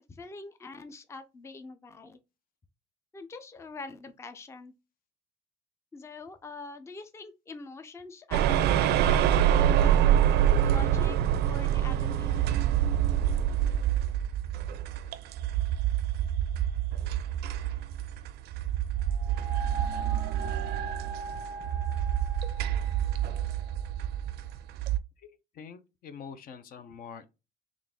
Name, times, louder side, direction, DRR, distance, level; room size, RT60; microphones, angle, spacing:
voice 1, 0.1-2.2 3.1-4.7 5.9-10.1 10.6-11.2 11.4-12.8 20.4-20.9 21.3-21.7, left 3 dB, 15° left, 0.4 m, -44 dB
sound 1, 8.3-25.0, right 10 dB, 70° right, 0.4 m, -26 dB
voice 2, 25.5-27.3, left 6 dB, 60° left, 0.6 m, -45 dB
3.8 x 2.4 x 3.5 m
cardioid pair, 110°, 17 cm